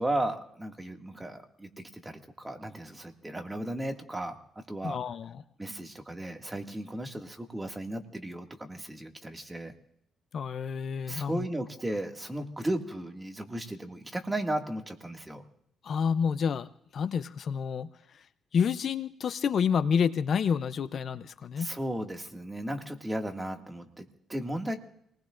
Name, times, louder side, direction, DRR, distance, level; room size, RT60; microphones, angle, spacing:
voice 1, 0.0-5.0 5.6-9.7 11.1-15.4 21.6-24.8, right 1 dB, 15° right, 3 dB, 2.1 m, -35 dB
voice 2, 4.8-5.4 10.3-11.5 15.8-18.3 18.5-21.7, left 7 dB, 55° left, 13 dB, 0.5 m, -29 dB
29.0 x 19.5 x 2.5 m, 0.77 s
cardioid pair, 90°, 0 cm